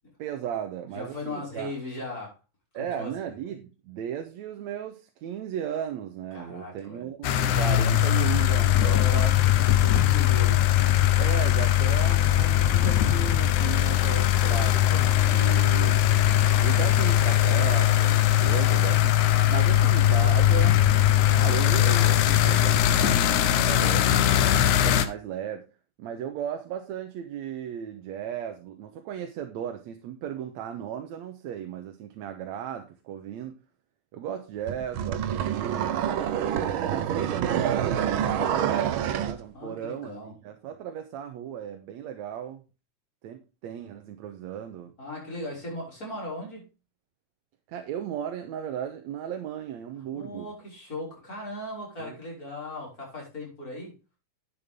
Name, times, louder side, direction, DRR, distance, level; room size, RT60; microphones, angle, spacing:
voice 1, 0.2-1.7 2.7-9.3 11.2-16.0 16.6-19.2 19.5-20.9 21.3-25.7 26.0-33.6 34.1-36.0 36.9-42.6 43.2-44.9 47.7-50.5 52.0-52.2, right 9 dB, 70° right, 6 dB, 2.2 m, -36 dB
voice 2, 0.9-2.4 2.7-3.1 6.3-7.0 8.8-11.2 39.5-40.3 45.0-46.6 50.1-53.9, left 1 dB, 25° left, -3 dB, 6.3 m, -38 dB
sound 1, 7.2-25.1, left 12 dB, 80° left, 2.3 m, -21 dB
sound 2, 34.7-39.4, right 9 dB, 90° right, 1.1 m, -27 dB
10.5 x 8.9 x 3.7 m, 0.29 s
omnidirectional pair, 3.4 m